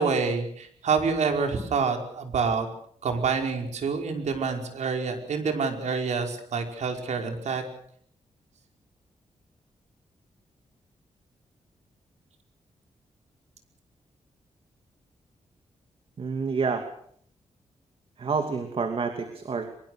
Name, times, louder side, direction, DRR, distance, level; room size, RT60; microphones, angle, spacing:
voice 1, 0.0-2.7 3.0-7.6, right 5 dB, 80° right, 4 dB, 5.2 m, -27 dB
voice 2, 16.2-16.9 18.2-19.7, right 5 dB, 50° right, 6 dB, 2.8 m, -28 dB
25.0 x 22.5 x 6.6 m, 0.64 s
wide cardioid pair, 130°, 12 cm